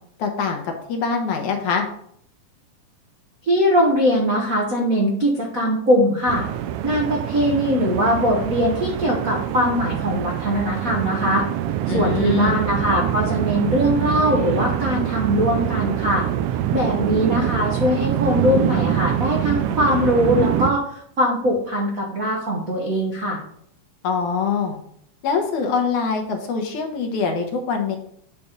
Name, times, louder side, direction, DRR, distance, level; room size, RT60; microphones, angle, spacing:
voice 1, 0.2-1.9 11.9-12.6 24.0-24.8 25.2-28.0, left 5 dB, 75° left, 3 dB, 2.5 m, -24 dB
voice 2, 3.4-6.5 6.8-11.4 11.9-16.2 16.7-23.4, equal, 60° right, -1 dB, 0.9 m, -21 dB
sound 1, 6.3-20.7, right 11 dB, 90° right, 2.1 m, -24 dB
8.6 x 4.2 x 5.1 m, 0.67 s
omnidirectional pair, 3.6 m